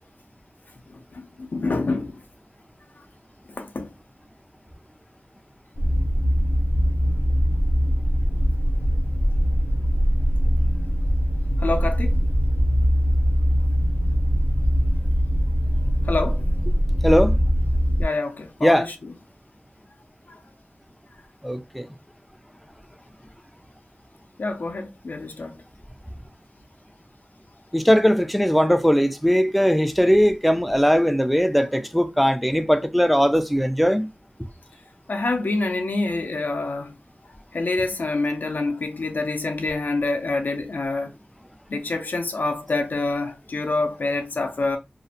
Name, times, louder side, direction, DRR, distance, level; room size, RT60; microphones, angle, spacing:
voice 1, 1.1-2.1 3.6-3.9 11.6-12.2 16.1-16.4 18.0-18.9 24.4-25.6 35.1-37.0 37.5-41.1 41.7-44.8, left 3 dB, 90° left, 0.4 m, -26 dB
sound 1, 5.7-18.1, equal, 45° left, 0.6 m, -21 dB
voice 2, 17.0-17.4 18.6-18.9 21.4-21.9 27.7-34.1, equal, ahead, 0.3 m, -19 dB
2.5 x 2.0 x 2.6 m
wide cardioid pair, 55°, 3 cm